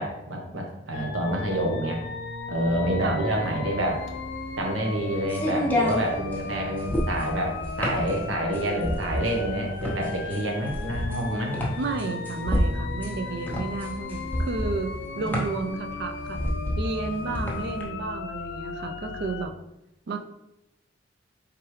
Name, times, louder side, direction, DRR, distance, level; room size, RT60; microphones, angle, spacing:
voice 1, 0.0-2.0 2.5-4.0 4.6-11.6 15.2-15.3 17.3-17.4, right 1 dB, 90° right, 0 dB, 1.1 m, -28 dB
sound 1, 0.9-19.5, left 4 dB, 65° left, 0.4 m, -36 dB
sound 2, 3.9-17.8, left 1 dB, 10° left, 0.8 m, -29 dB
voice 2, 11.8-16.4 16.8-19.5 20.1-20.2, right 4 dB, 60° right, 7 dB, 0.5 m, -32 dB
4.6 x 3.6 x 3.2 m, 0.90 s
head